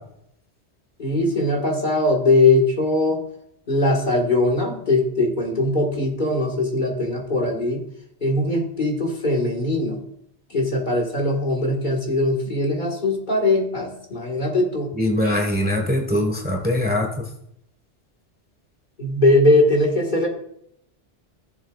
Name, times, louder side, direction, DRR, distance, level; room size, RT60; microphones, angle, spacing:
voice 1, 1.0-3.2 3.7-7.8 8.2-10.0 10.5-14.9 19.0-20.3, left 2 dB, 45° left, 0 dB, 1.9 m, -20 dB
voice 2, 14.9-17.1, left 1 dB, 10° right, 2 dB, 1.4 m, -22 dB
17.5 x 7.1 x 2.4 m, 0.74 s
omnidirectional pair, 1.2 m